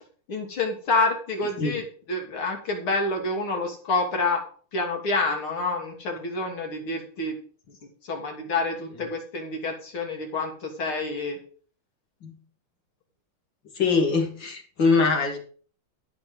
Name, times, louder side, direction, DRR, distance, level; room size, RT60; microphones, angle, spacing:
voice 1, 0.3-4.4 4.7-7.4 8.0-11.4, left 3 dB, 85° left, 2 dB, 3.7 m, -28 dB
voice 2, 13.8-15.4, left 4 dB, 60° left, 2 dB, 3.5 m, -23 dB
13.5 x 6.3 x 6.3 m, 0.43 s
omnidirectional pair, 2.3 m